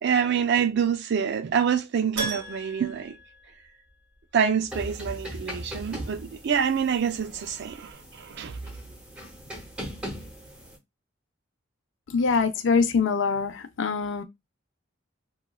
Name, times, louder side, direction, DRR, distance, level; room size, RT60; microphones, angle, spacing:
voice 1, 0.0-3.2 4.3-8.6, right 7 dB, 55° right, 0.4 m, -26 dB
Keyboard (musical), 2.2-4.2 4.5-4.6 7.3-7.4 7.6-7.7, right 3 dB, 90° right, 1.2 m, -36 dB
sound 1, 4.7-10.8, equal, 5° right, 0.7 m, -40 dB
voice 2, 12.1-14.2, left 5 dB, 65° left, 0.4 m, -24 dB
2.9 x 2.2 x 2.3 m
head